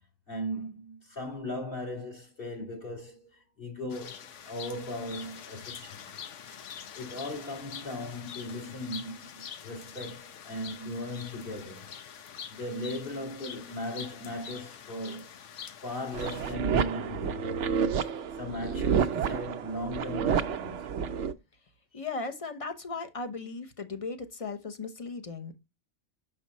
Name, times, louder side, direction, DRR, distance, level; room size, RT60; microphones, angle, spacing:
voice 1, 0.3-6.1 6.5-6.6 6.9-11.9 12.5-15.3 15.8-17.6 18.3-21.1 21.9-22.0, left 1 dB, 45° left, 2.6 m, -38 dB
sound 1, 3.9-16.5, left 7 dB, 80° left, 1.1 m, -45 dB
sound 2, 16.1-21.3, right 7 dB, 75° right, 0.9 m, -29 dB
voice 2, 21.9-25.6, left 4 dB, 30° left, 0.9 m, -37 dB
6.3 x 5.4 x 4.1 m
omnidirectional pair, 1.3 m